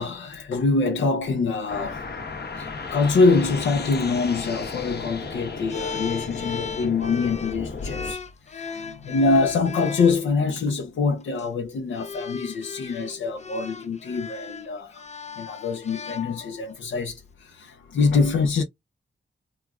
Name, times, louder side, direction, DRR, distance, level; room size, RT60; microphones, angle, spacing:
voice 1, 0.0-2.0 2.6-15.1 15.4-18.6, left 4 dB, 85° left, 0.6 m, -24 dB
sound 1, 1.7-8.1, left 4 dB, 55° left, 0.8 m, -34 dB
sound 2, 5.7-10.2 11.2-11.4 11.9-16.8, left 5 dB, 35° left, 0.5 m, -36 dB
2.9 x 2.4 x 2.2 m
cardioid pair, 60°, 20 cm